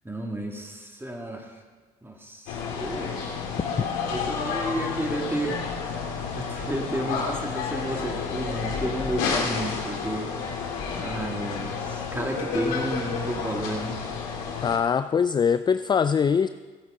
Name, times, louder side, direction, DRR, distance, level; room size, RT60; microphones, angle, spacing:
voice 1, 0.0-1.6 2.0-3.1 4.1-5.6 6.4-10.3 11.0-14.0, right 1 dB, 10° right, 2 dB, 2.2 m, -32 dB
sound 1, 2.5-14.8, left 5 dB, 80° left, 2.1 m, -30 dB
voice 2, 14.6-16.5, left 6 dB, 25° left, 12 dB, 0.3 m, -22 dB
15.5 x 8.9 x 3.9 m, 1.3 s
hypercardioid pair, 60°, 19 cm